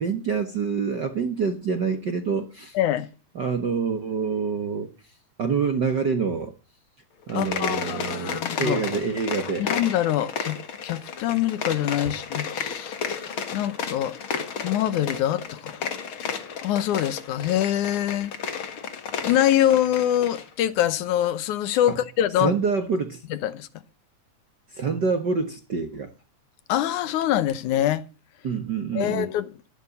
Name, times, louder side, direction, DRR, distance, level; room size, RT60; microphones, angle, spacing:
voice 1, 0.0-2.8 3.3-4.9 5.4-6.5 7.3-9.7 21.9-22.0 22.4-23.2 24.7-26.1 28.4-29.3, right 5 dB, 45° right, 1.6 m, -26 dB
voice 2, 2.8-3.1 7.3-8.8 9.6-10.6 10.8-13.0 13.5-15.7 16.6-18.3 19.2-22.5 23.4-23.7 26.7-28.0 29.0-29.5, left 12 dB, 80° left, 2.5 m, -24 dB
sound 1, 7.2-20.5, left 6 dB, 50° left, 2.2 m, -33 dB
13.0 x 11.5 x 7.1 m
omnidirectional pair, 3.5 m